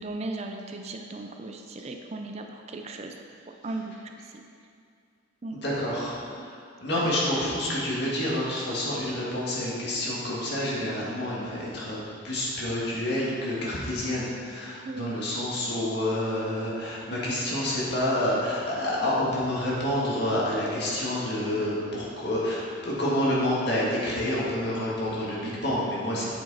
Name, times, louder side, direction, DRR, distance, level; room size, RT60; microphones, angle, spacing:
voice 1, 0.0-3.1 3.6-3.9 4.3-4.4 5.4-5.6 6.3-6.5 7.0-7.1 14.8-15.1, right 2 dB, 35° right, 4 dB, 0.4 m, -36 dB
voice 2, 5.5-6.5 6.8-12.0 12.2-26.3, left 1 dB, 55° left, -6 dB, 2.0 m, -28 dB
8.2 x 6.1 x 4.2 m, 2.3 s
head